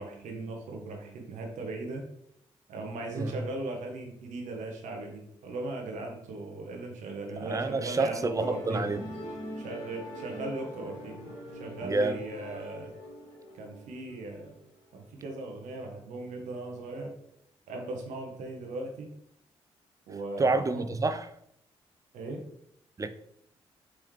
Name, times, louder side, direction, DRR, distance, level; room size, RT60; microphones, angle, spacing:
voice 1, 0.0-2.0 2.7-8.9 9.6-11.2 11.5-12.9 13.5-14.6 14.9-17.1 17.7-19.1 20.1-20.8 22.1-22.4, right 2 dB, 75° right, 0.7 m, -38 dB
voice 2, 7.4-9.0 11.8-12.2 20.4-21.3 23.0-23.1, right 3 dB, 25° right, 0.4 m, -28 dB
Musical instrument, 8.3-14.9, equal, 85° left, 1.1 m, -43 dB
3.5 x 3.1 x 3.1 m
hypercardioid pair, 45°, 13 cm